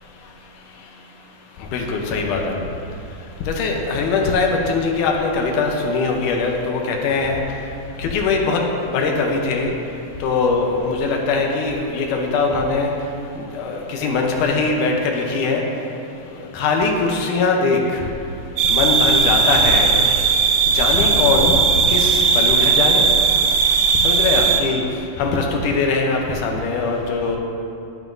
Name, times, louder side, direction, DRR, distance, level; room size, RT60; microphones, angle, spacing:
voice 1, 1.7-2.5 3.5-7.4 8.0-8.6 8.9-9.7 10.2-12.9 13.6-15.6 16.5-17.8 18.7-19.9 20.7-21.6 21.9-23.1 24.0-24.8 25.2-27.4, left 4 dB, 75° left, 1 dB, 2.0 m, -21 dB
sound 1, 18.6-24.6, right 5 dB, 80° right, 2.4 m, -17 dB
11.0 x 9.0 x 2.6 m, 2.7 s
omnidirectional pair, 4.3 m